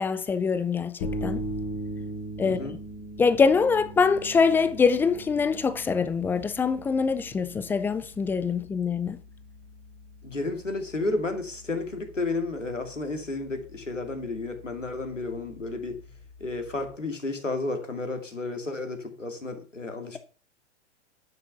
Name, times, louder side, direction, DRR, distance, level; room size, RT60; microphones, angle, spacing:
voice 1, 0.0-1.4 2.4-2.6 3.2-9.2, left 5 dB, 5° left, 0.4 m, -24 dB
sound 1, 1.0-16.9, right 1 dB, 40° left, 2.6 m, -40 dB
voice 2, 2.4-2.8 10.2-16.0 16.4-20.2, left 2 dB, 90° left, 2.5 m, -32 dB
11.0 x 6.5 x 5.7 m
figure-of-eight pair, 105°, 36 cm